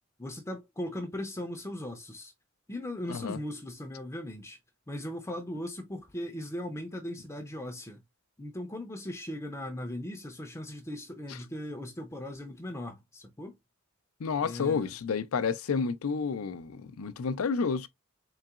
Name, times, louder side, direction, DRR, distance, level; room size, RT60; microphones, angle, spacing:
voice 1, 0.2-2.3 2.7-4.6 4.9-8.0 8.4-13.6 14.4-14.9, left 1 dB, 15° left, 0.5 m, -38 dB
voice 2, 14.2-17.9, left 5 dB, 80° left, 0.5 m, -30 dB
3.8 x 3.7 x 2.3 m
head